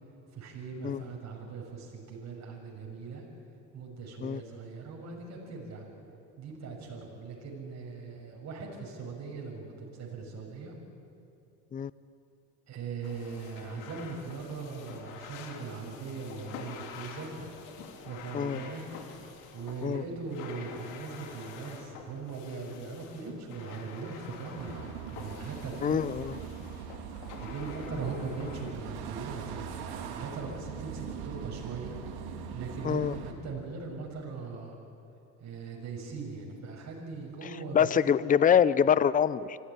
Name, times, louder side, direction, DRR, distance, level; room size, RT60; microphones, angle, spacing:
voice 1, 0.3-3.2 3.7-5.9 6.4-10.7 12.7-17.5 18.0-18.9 19.5-26.0 26.4-26.5 27.4-34.7 35.4-37.9, right 4 dB, 40° right, -1 dB, 6.6 m, -40 dB
sound 1, 13.0-28.7, left 6 dB, 75° left, 3.1 m, -47 dB
sound 2, 24.5-33.3, right 7 dB, 65° right, 3.2 m, -41 dB
voice 2, 25.8-26.3 32.8-33.1 37.7-39.6, left 8 dB, 20° left, 18 dB, 0.6 m, -25 dB
25.0 x 16.0 x 9.9 m, 2.7 s
hypercardioid pair, 85°, 41 cm